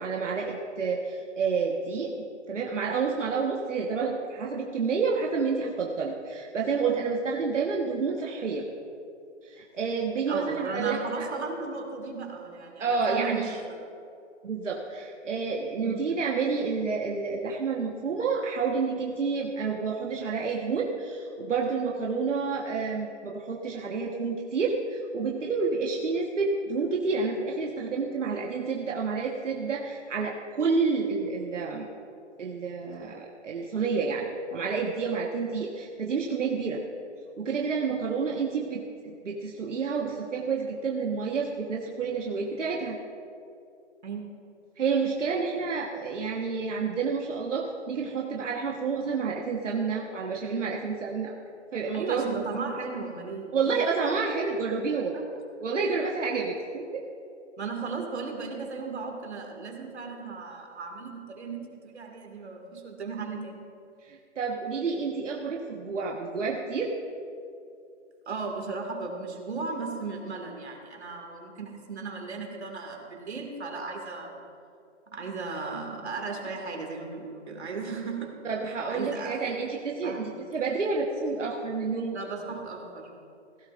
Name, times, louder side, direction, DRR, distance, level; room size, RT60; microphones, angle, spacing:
voice 1, 0.0-2.1 2.5-8.6 9.4-11.3 12.8-13.5 14.4-31.9 32.4-36.8 37.4-43.0 44.8-51.3 51.7-52.2 53.5-55.2 55.6-57.0 64.0-66.9 78.4-82.2, right 5 dB, 85° right, -2 dB, 1.5 m, -29 dB
voice 2, 10.3-13.8 15.8-16.1 44.0-44.3 51.9-53.9 54.2-54.3 55.1-55.2 57.6-63.7 68.3-74.4 75.1-79.5 80.0-80.4 82.1-83.1, right 4 dB, 65° right, 2 dB, 2.2 m, -36 dB
16.5 x 14.5 x 2.6 m, 2.6 s
hypercardioid pair, 175°, 36 cm